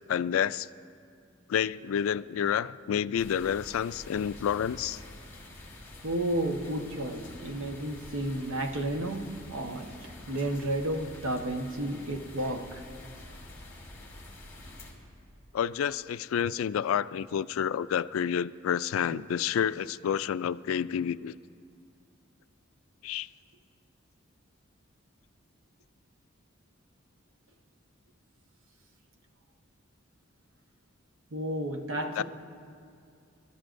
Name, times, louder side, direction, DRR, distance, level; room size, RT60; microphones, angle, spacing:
voice 1, 0.1-0.7 1.5-5.0 15.5-21.3 23.0-23.3 32.2-32.3, left 8 dB, 90° left, 0.3 m, -29 dB
sound 1, 3.2-14.9, left 1 dB, 10° left, 2.9 m, -47 dB
voice 2, 6.0-12.8 19.1-19.2 31.3-32.2, right 1 dB, 85° right, 1.1 m, -32 dB
26.0 x 13.0 x 2.6 m
head